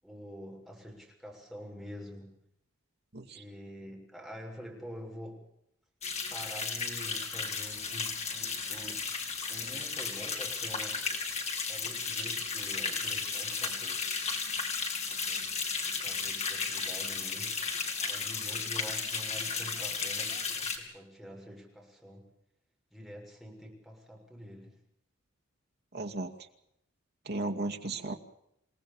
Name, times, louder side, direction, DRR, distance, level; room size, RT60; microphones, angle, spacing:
voice 1, 0.0-2.3 3.3-5.4 6.3-9.1 9.5-11.1 11.7-14.3 15.2-15.5 16.0-17.5 18.0-22.3 22.9-24.7, equal, ahead, 1 dB, 6.9 m, -47 dB
voice 2, 3.1-3.4 25.9-26.5 27.2-28.1, right 2 dB, 50° right, 3 dB, 2.4 m, -35 dB
sound 1, 6.0-20.8, left 5 dB, 35° left, 4.2 m, -34 dB
28.5 x 18.5 x 7.1 m, 0.78 s
head